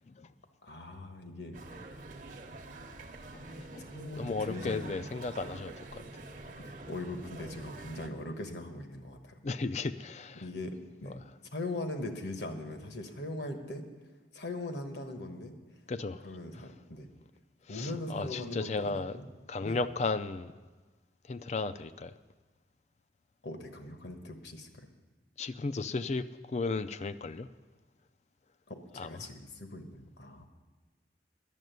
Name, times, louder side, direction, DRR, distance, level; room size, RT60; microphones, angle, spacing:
voice 1, 0.6-1.6 3.9-5.1 6.6-9.4 10.3-11.2 11.5-13.8 14.3-15.5 16.2-17.1 17.7-19.3 19.6-19.8 23.4-24.9 28.7-30.4, left 1 dB, 70° left, 6 dB, 1.3 m, -40 dB
sound 1, 1.5-8.1, right 2 dB, 45° right, 0.9 m, -46 dB
voice 2, 3.6-3.9 4.2-6.0 9.4-10.4 15.9-16.2 17.7-19.2 19.5-20.5 21.3-22.1 25.4-27.5 29.0-29.2, left 3 dB, 40° left, 13 dB, 0.4 m, -35 dB
11.0 x 7.5 x 9.3 m, 1.3 s
head